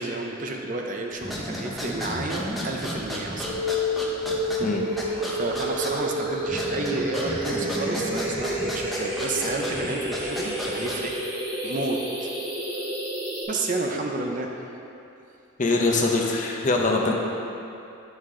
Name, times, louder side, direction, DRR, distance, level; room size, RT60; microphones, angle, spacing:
voice 1, 0.0-3.6 5.3-11.1 11.6-12.3 12.7-12.9 13.5-14.5, right 2 dB, 40° right, 1 dB, 0.6 m, -31 dB
sound 1, 1.2-11.2, equal, ahead, 0.7 m, -34 dB
sound 2, 3.4-13.4, equal, 25° right, 1.5 m, -30 dB
voice 2, 15.6-17.1, left 2 dB, 35° left, 0 dB, 0.7 m, -23 dB
9.3 x 6.3 x 3.7 m, 2.7 s
head